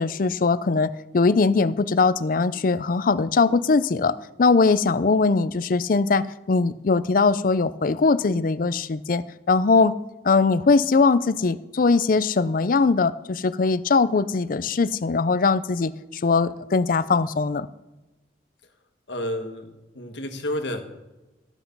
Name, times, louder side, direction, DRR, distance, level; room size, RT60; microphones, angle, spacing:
voice 1, 0.0-9.9 10.2-17.7, left 4 dB, 50° left, 15 dB, 0.5 m, -21 dB
voice 2, 19.1-19.7 19.9-20.8, left 1 dB, 90° left, 5 dB, 1.6 m, -30 dB
14.0 x 8.1 x 5.4 m, 1.1 s
head